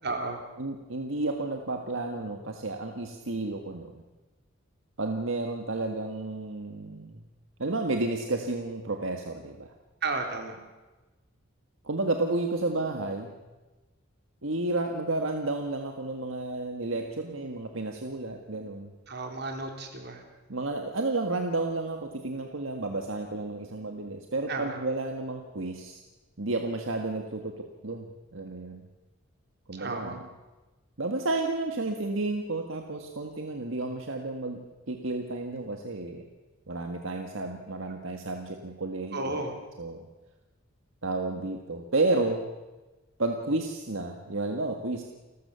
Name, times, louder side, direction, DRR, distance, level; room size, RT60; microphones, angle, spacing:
voice 1, 0.0-0.4 10.0-10.6 19.1-20.2 24.5-24.8 29.7-30.2 39.1-39.6, right 3 dB, 55° right, 3 dB, 3.7 m, -33 dB
voice 2, 0.6-4.0 5.0-7.2 7.6-9.7 11.8-13.3 14.4-18.9 20.5-26.0 26.4-28.8 29.7-30.2 31.0-36.3 36.7-39.3 39.8-40.1 41.0-42.5 43.2-45.0, right 2 dB, 75° right, 4 dB, 1.7 m, -31 dB
29.5 x 14.0 x 7.0 m, 1.1 s
head